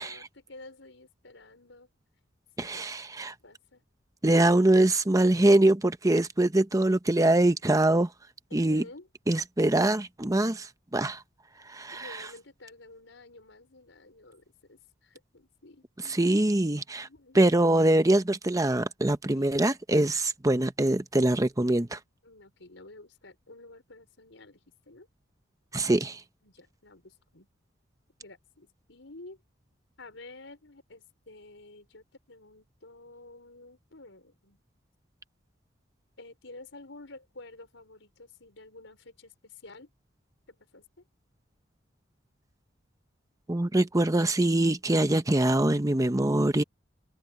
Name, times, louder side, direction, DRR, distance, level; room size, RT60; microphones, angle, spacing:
voice 1, 0.0-1.9 2.6-3.0 3.4-3.8 8.5-9.1 11.9-16.2 17.0-17.4 19.3-19.5 22.2-25.1 26.4-27.5 28.2-29.4 30.0-34.6 36.2-39.9 40.5-40.9, left 2 dB, 90° left, 5.0 m, -50 dB
voice 2, 2.6-3.3 4.2-8.1 8.5-8.8 9.3-11.2 11.7-12.2 16.1-17.1 17.3-22.0 25.7-26.2 43.5-46.6, right 1 dB, 20° right, 0.8 m, -23 dB
head